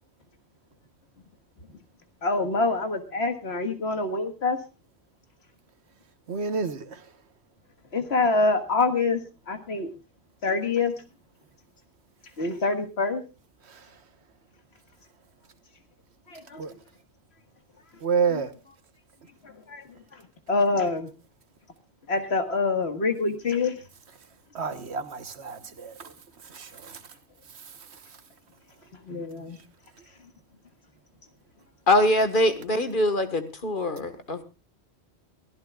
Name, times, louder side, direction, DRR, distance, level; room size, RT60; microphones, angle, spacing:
voice 1, 2.2-4.6 7.9-9.2 9.5-9.9 10.4-10.9 12.4-13.2 16.3-16.6 18.3-18.4 19.4-19.8 20.1-20.2 20.5-21.1 22.1-23.8 29.1-29.6, left 3 dB, 75° left, 2.0 m, -25 dB
voice 2, 6.3-7.0 13.7-13.9 16.6-16.7 18.0-18.5 24.5-26.1 26.4-27.0, right 5 dB, 75° right, 1.5 m, -29 dB
voice 3, 31.9-34.4, left 1 dB, 50° left, 1.7 m, -23 dB
23.0 x 14.5 x 2.4 m
omnidirectional pair, 1.1 m